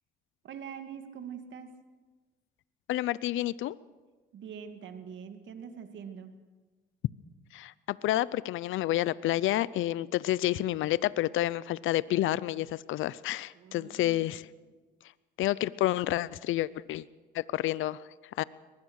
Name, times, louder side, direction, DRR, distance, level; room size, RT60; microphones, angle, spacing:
voice 1, 0.4-1.7 4.3-6.3 13.5-14.4, right 7 dB, 70° right, 7 dB, 2.3 m, -44 dB
voice 2, 2.9-3.8 7.5-14.5 15.4-17.1 17.3-18.4, left 14 dB, 80° left, 19 dB, 0.6 m, -29 dB
23.0 x 20.0 x 6.4 m, 1.3 s
cardioid pair, 90°, 20 cm